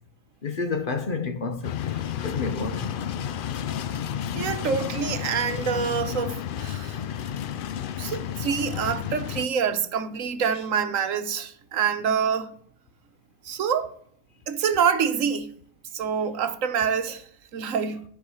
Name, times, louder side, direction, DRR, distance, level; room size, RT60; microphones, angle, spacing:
voice 1, 0.4-2.9, left 4 dB, 45° left, 0.8 m, -30 dB
sound 1, 1.6-9.5, left 9 dB, 70° left, 0.5 m, -31 dB
voice 2, 4.3-7.0 8.0-12.5 13.4-13.9 14.5-15.5 15.9-18.0, right 7 dB, 75° right, 1.2 m, -26 dB
11.0 x 4.7 x 7.0 m
omnidirectional pair, 1.4 m